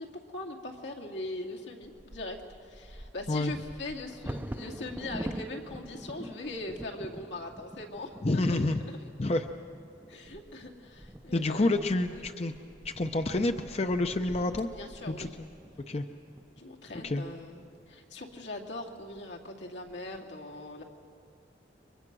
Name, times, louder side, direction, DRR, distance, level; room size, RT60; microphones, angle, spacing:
voice 1, 0.0-9.0 10.1-11.7 12.1-12.2 14.8-15.4 16.6-20.8, left 2 dB, 85° left, 0 dB, 2.5 m, -41 dB
Bird vocalization bird call bird song / Wind / Thunder, 1.8-17.7 18.4-18.5 18.8-19.2 19.6-20.2, right 1 dB, 10° right, 0.5 m, -45 dB
voice 2, 8.2-8.8 9.2-9.5 11.3-12.5 12.8-14.7 15.1-15.5 15.9-16.1 16.9-17.2, left 2 dB, 35° left, 7 dB, 0.6 m, -28 dB
29.5 x 24.0 x 6.1 m, 2.5 s
head